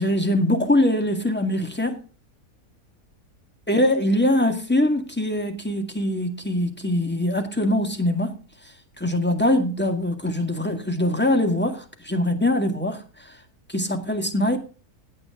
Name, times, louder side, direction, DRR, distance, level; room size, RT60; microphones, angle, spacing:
voice 1, 0.0-2.0 3.7-8.4 9.0-13.4 13.7-14.6, left 1 dB, 5° left, 1.9 m, -23 dB
15.5 x 9.7 x 3.7 m
omnidirectional pair, 1.6 m